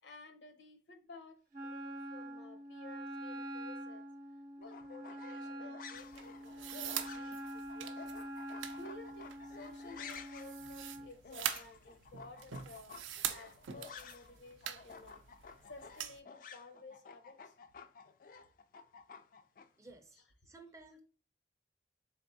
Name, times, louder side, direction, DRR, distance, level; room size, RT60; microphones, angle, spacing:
voice 1, 0.0-4.1 4.6-8.1 8.7-13.0 13.3-15.2 15.7-17.5 20.1-20.5, left 2 dB, 80° left, 0.8 m, -55 dB
Wind instrument woodwind instrument, 1.5-11.1, equal, 45° right, 0.7 m, -45 dB
sound 1, 4.6-14.4 14.6-19.7, left 6 dB, 50° left, 0.3 m, -52 dB
sound 2, 5.9-16.2, right 10 dB, 90° right, 0.4 m, -44 dB
voice 2, 19.8-20.2 20.5-21.0, right 3 dB, 15° right, 0.4 m, -55 dB
3.9 x 3.4 x 2.6 m
head